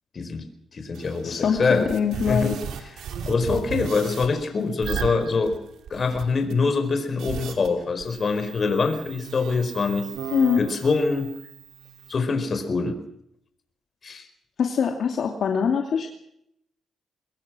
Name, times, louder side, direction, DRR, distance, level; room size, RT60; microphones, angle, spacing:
voice 1, 0.1-0.5 0.7-1.9 2.3-2.5 3.3-5.6 5.9-10.1 10.6-11.3 12.1-13.0 14.0-14.3, left 4 dB, 45° left, 8 dB, 4.6 m, -24 dB
sound 1, 0.9-1.1 1.6-4.4 4.8-6.5 7.2-7.7 8.0-12.1, right 7 dB, 80° right, 2.8 m, -35 dB
voice 2, 1.2-2.6 10.3-10.7 14.6-16.1, left 6 dB, 65° left, 2 dB, 2.6 m, -23 dB
24.0 x 21.5 x 6.2 m, 0.75 s
cardioid pair, 80°, 0 cm